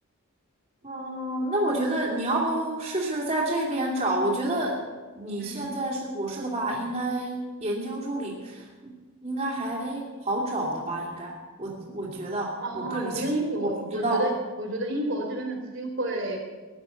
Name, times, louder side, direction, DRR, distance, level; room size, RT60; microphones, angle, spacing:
voice 1, 0.8-4.8 5.1-8.9 9.2-13.3 13.6-14.3, right 1 dB, 30° right, -5 dB, 2.6 m, -29 dB
voice 2, 12.6-14.3 14.6-16.4, right 1 dB, 60° right, 1 dB, 3.2 m, -30 dB
16.5 x 11.0 x 5.8 m, 1.4 s
head